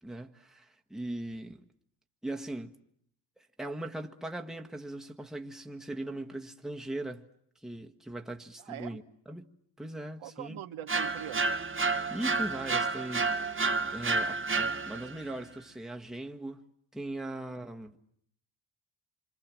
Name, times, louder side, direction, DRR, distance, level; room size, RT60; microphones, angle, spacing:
voice 1, 0.0-1.6 2.2-2.7 3.6-7.3 7.6-9.0 9.3-9.5 9.8-10.6 11.8-13.6 13.9-16.6 16.9-18.0, right 1 dB, ahead, 1.6 m, -39 dB
voice 2, 8.6-9.0 10.2-11.6, right 11 dB, 80° right, 1.5 m, -42 dB
sound 1, 10.9-15.2, right 3 dB, 25° right, 1.4 m, -30 dB
26.5 x 26.0 x 7.6 m
cardioid pair, 85°, 48 cm